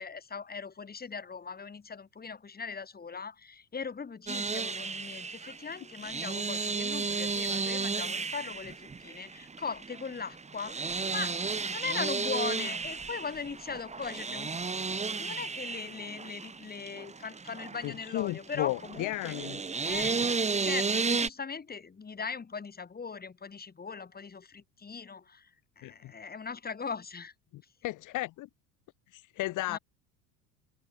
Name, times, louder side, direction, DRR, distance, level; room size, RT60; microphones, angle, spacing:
voice 1, 0.0-11.4 11.6-14.6 14.9-19.4 19.8-20.3 20.6-25.5 25.8-27.3 29.7-29.8, left 5 dB, 20° left, 5.0 m, -39 dB
sound 1, 4.3-21.3, right 4 dB, 15° right, 2.1 m, -33 dB
voice 2, 17.8-19.6 25.8-26.1 27.8-28.5 29.1-29.8, left 17 dB, 45° left, 2.0 m, -34 dB
figure-of-eight pair, 70°, 41 cm